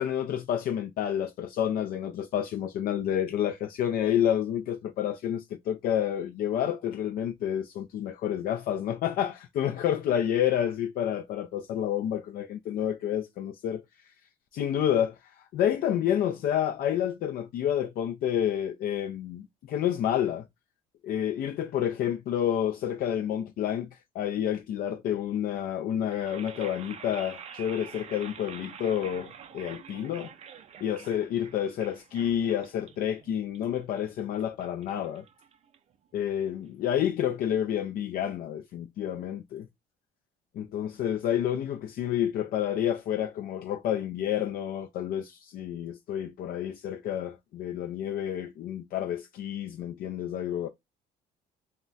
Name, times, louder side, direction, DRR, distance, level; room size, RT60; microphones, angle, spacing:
voice 1, 0.0-13.8 14.5-20.5 21.0-23.9 24.1-30.3 30.8-35.2 36.1-39.7 40.6-50.7, left 10 dB, 60° left, 0.4 m, -29 dB
sound 1, 26.1-36.1, right 7 dB, 40° right, 0.4 m, -47 dB
2.2 x 2.1 x 3.8 m
cardioid pair, 110°, 17 cm